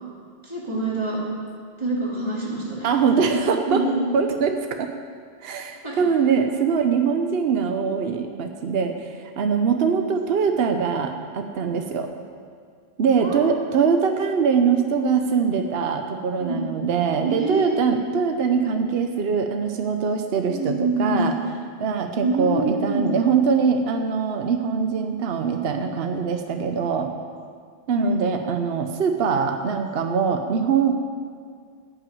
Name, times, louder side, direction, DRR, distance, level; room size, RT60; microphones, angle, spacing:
voice 1, 0.4-1.2 1.8-2.9 3.3-4.0 5.8-6.1 13.1-13.5 16.4-16.6 17.2-17.8 20.5-21.3 22.2-23.0 27.9-28.2, right 1 dB, 30° right, -5 dB, 2.6 m, -26 dB
voice 2, 2.8-3.8 4.1-4.9 5.4-12.1 13.0-21.3 21.8-27.1 27.9-31.1, right 6 dB, 70° right, 5 dB, 1.0 m, -23 dB
14.0 x 5.9 x 9.2 m, 2.1 s
omnidirectional pair, 1.0 m